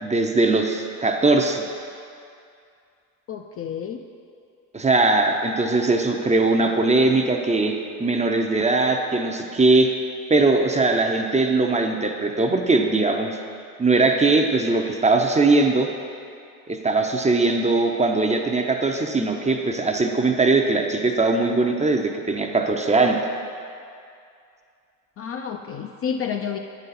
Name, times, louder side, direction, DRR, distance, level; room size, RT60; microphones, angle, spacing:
voice 1, 0.0-1.6 4.7-9.9 10.3-13.4 13.8-15.9 16.7-23.2, right 3 dB, 15° right, 3 dB, 0.5 m, -20 dB
voice 2, 3.3-4.0 25.2-26.6, left 7 dB, 35° left, 4 dB, 0.4 m, -30 dB
9.0 x 4.1 x 4.1 m, 2.4 s
hypercardioid pair, 70°, 41 cm